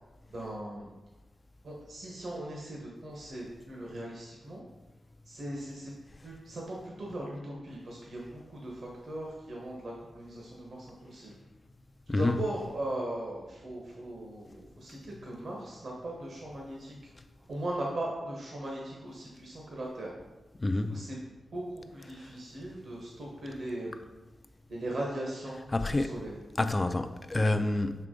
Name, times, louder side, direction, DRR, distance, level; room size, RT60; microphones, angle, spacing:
voice 1, 0.3-0.9 1.6-4.6 5.3-5.9 6.2-11.3 12.1-16.9 17.5-20.1 20.7-21.2 21.5-23.9 24.7-26.4, right 1 dB, 55° right, -3 dB, 1.0 m, -39 dB
voice 2, 20.6-21.0 25.7-26.2 26.6-27.9, left 2 dB, 25° left, 8 dB, 0.3 m, -27 dB
5.8 x 4.6 x 3.8 m, 1.1 s
wide cardioid pair, 125°, 0 cm